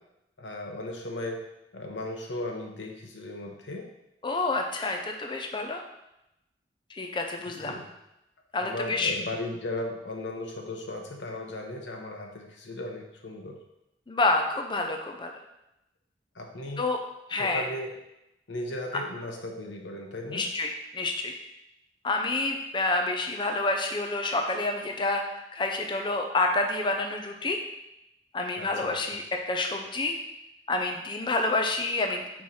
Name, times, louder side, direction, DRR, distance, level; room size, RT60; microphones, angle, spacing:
voice 1, 0.4-1.4 1.7-3.9 7.6-7.8 8.6-13.6 16.3-16.9 17.4-17.9 18.5-20.5 28.6-28.9, left 1 dB, 85° left, 1 dB, 1.1 m, -36 dB
voice 2, 4.2-5.8 6.9-7.7 8.5-9.1 14.1-15.3 16.8-17.0 17.3-17.6 20.3-21.3 22.0-25.2 25.5-27.6 28.3-29.2 29.5-30.2 30.7-32.2, left 2 dB, 25° left, 3 dB, 0.5 m, -28 dB
4.7 x 4.5 x 5.5 m, 0.89 s
head